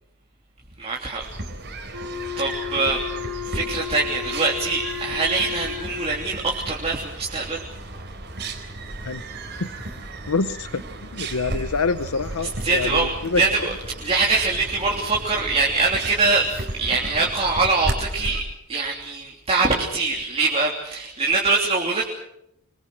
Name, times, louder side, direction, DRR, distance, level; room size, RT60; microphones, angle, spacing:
voice 1, 0.8-1.3 2.4-3.1 3.4-7.7 12.6-13.7 14.0-18.4 18.7-22.1, right 3 dB, 25° right, -2 dB, 3.2 m, -23 dB
sound 1, 1.2-18.4, right 2 dB, 50° right, 4.1 m, -34 dB
Wind instrument woodwind instrument, 1.9-6.2, left 8 dB, 75° right, 2.9 m, -33 dB
voice 2, 10.3-13.4, left 4 dB, 75° left, 14 dB, 0.8 m, -26 dB
25.5 x 23.5 x 6.3 m, 0.80 s
head